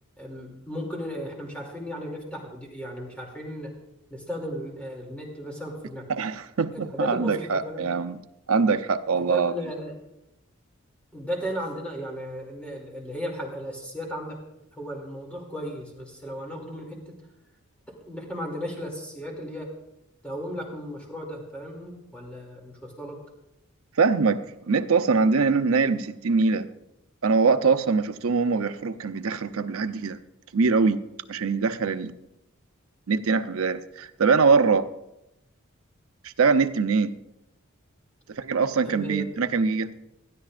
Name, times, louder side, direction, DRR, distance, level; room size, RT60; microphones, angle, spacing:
voice 1, 0.2-3.7 4.1-6.1 6.7-7.9 9.3-10.0 11.1-14.4 14.8-17.2 17.9-19.7 20.2-23.2 38.8-39.3, equal, 5° left, -1 dB, 2.6 m, -35 dB
voice 2, 6.1-8.2 8.5-9.5 24.0-26.7 27.2-30.2 30.5-31.0 31.3-32.1 33.1-34.9 36.2-37.1 38.3-39.9, right 4 dB, 80° right, 9 dB, 0.7 m, -23 dB
19.0 x 13.0 x 2.5 m, 0.88 s
head